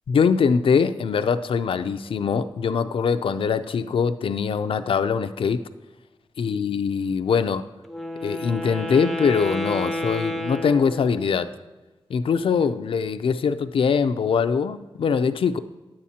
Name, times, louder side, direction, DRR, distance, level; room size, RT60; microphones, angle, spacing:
voice 1, 0.1-5.6 6.4-7.7 8.2-11.5 12.1-15.6, left 6 dB, 80° left, 10 dB, 0.4 m, -22 dB
Wind instrument woodwind instrument, 7.8-11.5, left 1 dB, ahead, 0.4 m, -30 dB
10.5 x 8.6 x 2.8 m, 1.2 s
wide cardioid pair, 160°, 9 cm